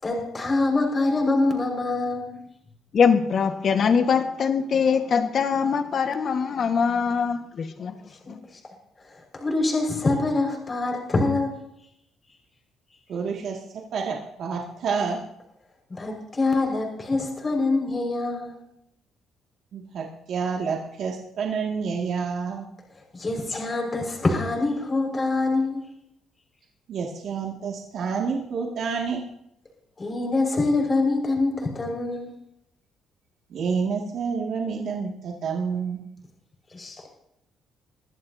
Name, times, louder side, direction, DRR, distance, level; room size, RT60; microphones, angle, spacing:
voice 1, 0.0-2.4 8.3-8.4 9.1-11.5 15.9-18.5 23.1-25.8 30.0-32.3 36.7-37.1, left 2 dB, 30° left, 5.3 m, -25 dB
voice 2, 2.9-8.0 8.3-8.4, left 6 dB, 50° left, 1.5 m, -22 dB
voice 3, 13.1-13.6 13.9-15.2 19.7-22.6 26.9-29.2 33.5-36.0, right 5 dB, 65° right, 2.1 m, -28 dB
22.5 x 14.0 x 2.8 m
cardioid pair, 100°, 0 cm